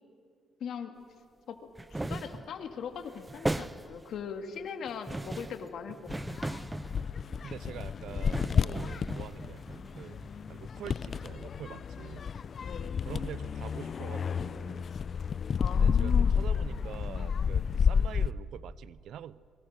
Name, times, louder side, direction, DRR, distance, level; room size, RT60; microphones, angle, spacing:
voice 1, 0.6-1.0 1.5-1.6 1.9-6.0 6.4-6.6 12.6-13.0 15.6-16.4, left 7 dB, 70° left, 7 dB, 2.0 m, -39 dB
sound 1, 1.8-2.6 2.9-4.2 4.9-7.5 8.1-10.8 11.1-11.2, right 2 dB, 15° right, 0.6 m, -38 dB
sound 2, 6.1-18.3, left 6 dB, 50° left, 0.6 m, -30 dB
voice 2, 7.4-10.2 10.5-12.2 13.0-14.9 15.7-19.4, right 10 dB, 75° right, 18 dB, 0.6 m, -45 dB
24.5 x 22.5 x 6.6 m, 2.3 s
cardioid pair, 90°, 0 cm